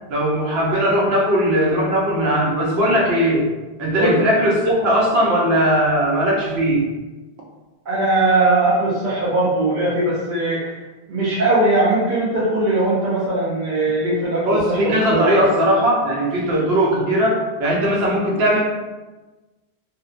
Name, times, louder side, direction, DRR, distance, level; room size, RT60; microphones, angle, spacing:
voice 1, 0.1-3.5 3.8-6.9 14.4-18.6, equal, 80° right, -3 dB, 0.9 m, -18 dB
voice 2, 7.9-10.8 11.1-15.5, right 2 dB, 55° right, -8 dB, 0.7 m, -20 dB
2.6 x 2.1 x 2.4 m, 1.2 s
omnidirectional pair, 1.1 m